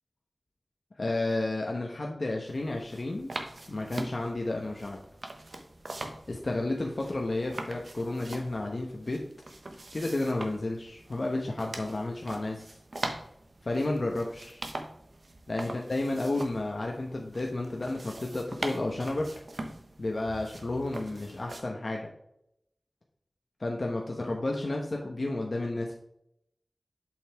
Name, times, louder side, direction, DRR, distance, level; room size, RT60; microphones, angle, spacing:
voice 1, 1.0-3.3 3.7-5.0 6.3-9.2 9.9-12.7 13.6-14.6 15.5-19.2 20.0-22.1 23.6-26.0, left 2 dB, 55° left, 0 dB, 1.0 m, -31 dB
sound 1, 2.5-21.6, right 2 dB, 60° right, 1.0 m, -42 dB
7.3 x 5.7 x 3.4 m, 0.77 s
wide cardioid pair, 75°, 0 cm